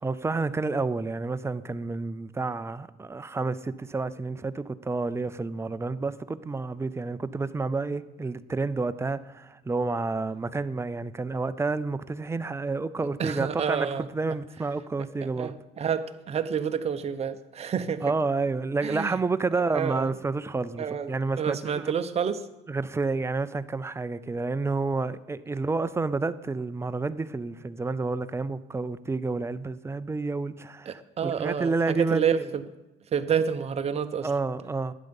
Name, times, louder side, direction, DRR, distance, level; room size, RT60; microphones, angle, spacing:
voice 1, 0.0-13.9 14.1-15.5 18.0-21.9 22.7-32.5 34.2-34.9, right 3 dB, 15° right, 0.5 m, -29 dB
voice 2, 13.2-14.1 15.2-18.1 18.8-19.2 19.7-20.1 20.8-21.1 21.4-22.4 30.9-32.6 33.1-34.3, right 7 dB, 40° right, 0.8 m, -29 dB
12.0 x 8.8 x 5.3 m
cardioid pair, 110°, 17 cm